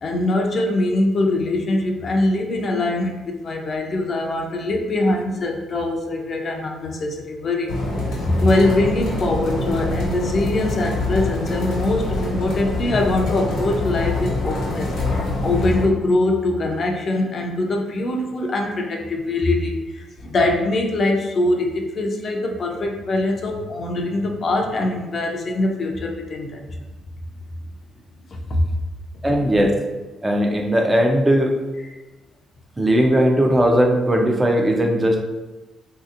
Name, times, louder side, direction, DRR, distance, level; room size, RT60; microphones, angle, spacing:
voice 1, 0.0-7.7 8.2-14.9 15.4-26.7 28.3-28.6, left 2 dB, 50° left, 1 dB, 0.5 m, -22 dB
sound 1, 7.7-15.8, left 2 dB, 85° left, 1.1 m, -25 dB
voice 2, 29.2-29.8 30.2-31.6 32.8-35.2, equal, 20° right, 2 dB, 0.4 m, -18 dB
3.2 x 2.7 x 2.5 m, 1.1 s
cardioid pair, 85°, 0 cm